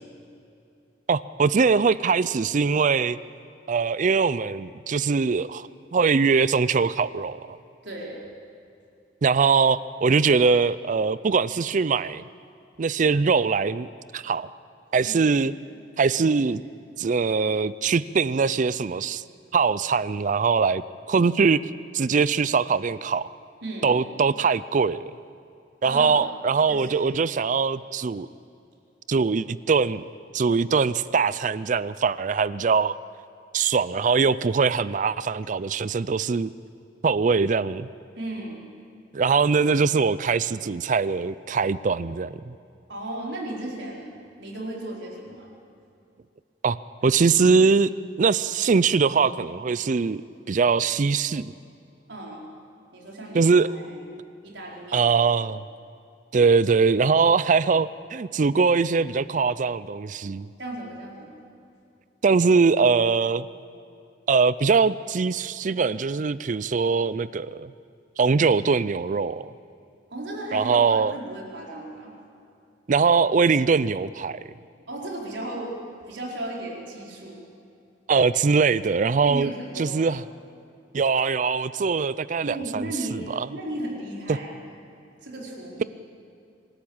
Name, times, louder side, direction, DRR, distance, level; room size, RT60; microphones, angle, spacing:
voice 1, 1.1-3.2 3.7-7.6 9.2-12.2 12.8-14.5 14.9-15.5 16.0-16.6 17.0-19.2 19.5-20.8 21.1-21.6 21.9-23.3 23.8-25.1 25.8-28.3 29.1-30.0 30.3-32.9 33.5-36.5 37.0-37.9 39.1-42.6 46.6-46.8 47.0-47.9 48.2-50.2 50.5-51.5 53.3-53.7 54.9-55.6 56.3-60.5 62.2-63.5 64.3-67.7 68.2-69.5 70.5-71.2 72.9-74.4 78.1-79.5 79.8-80.2 80.9-83.5 84.3-84.4, right 5 dB, 45° right, 17 dB, 0.4 m, -22 dB
voice 2, 7.8-8.2 15.1-15.2 23.6-24.0 25.8-26.2 26.7-26.9 38.1-38.6 42.9-45.5 52.1-52.4 52.9-54.0 54.4-55.1 60.6-61.4 70.1-72.1 74.9-75.7 76.1-77.5 79.2-80.1 82.4-84.8 85.2-85.8, right 1 dB, 85° right, -2 dB, 4.5 m, -35 dB
25.0 x 13.0 x 8.8 m, 2.6 s
head